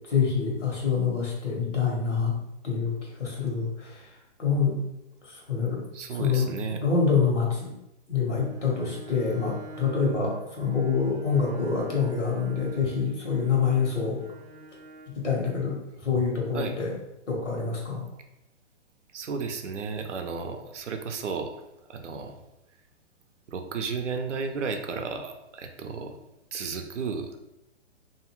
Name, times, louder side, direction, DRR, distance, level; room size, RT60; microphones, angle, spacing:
voice 1, 0.1-2.4 2.6-3.9 4.4-4.8 5.3-5.8 6.2-6.5 6.8-7.7 8.1-14.2 15.1-16.9 17.3-18.0, left 5 dB, 90° left, -2 dB, 1.2 m, -26 dB
voice 2, 5.9-6.8 16.5-16.8 19.1-21.5 21.9-22.4 23.5-26.2 26.5-27.3, right 5 dB, 90° right, 5 dB, 0.5 m, -33 dB
Bowed string instrument, 8.2-15.2, right 1 dB, 35° right, 0.5 m, -46 dB
2.6 x 2.4 x 3.0 m, 0.91 s
hypercardioid pair, 125°, 35 cm